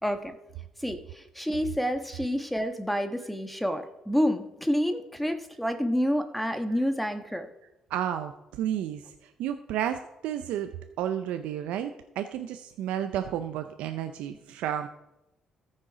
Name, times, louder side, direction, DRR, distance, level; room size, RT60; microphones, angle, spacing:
voice 1, 0.0-0.3 0.8-7.5, equal, 5° left, 7 dB, 1.3 m, -28 dB
voice 2, 7.9-10.7 11.0-14.9, right 10 dB, 85° right, 8 dB, 0.5 m, -32 dB
14.0 x 6.4 x 4.9 m, 0.89 s
supercardioid pair, 65°, 2 cm